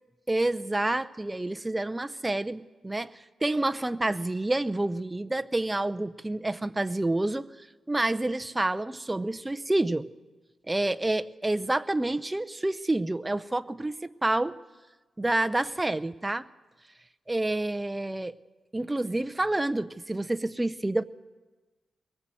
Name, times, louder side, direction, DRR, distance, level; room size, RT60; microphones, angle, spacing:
voice 1, 0.3-7.5 7.9-10.1 10.7-14.5 15.2-16.4 17.3-18.3 18.7-21.0, right 2 dB, 15° right, 11 dB, 0.7 m, -28 dB
22.5 x 19.0 x 7.8 m, 1.2 s
cardioid pair, 95°, 0 cm